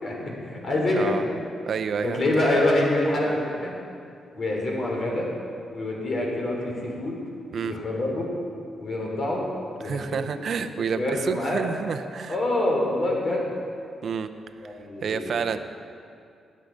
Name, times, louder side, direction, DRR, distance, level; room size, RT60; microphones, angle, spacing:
voice 1, 0.0-1.1 2.0-3.7 4.4-5.3 5.7-7.2 7.6-8.3 8.8-9.4 9.8-10.0 10.3-10.4 10.9-11.6 12.3-13.5 14.6-15.3, left 1 dB, 55° left, -1 dB, 3.5 m, -26 dB
voice 2, 0.9-1.2 1.7-2.4 7.5-7.7 9.8-12.4 14.0-14.3 14.6-14.7 15.0-15.6, right 6 dB, 65° right, 9 dB, 0.7 m, -29 dB
19.0 x 6.5 x 5.3 m, 2.4 s
supercardioid pair, 60°, 0 cm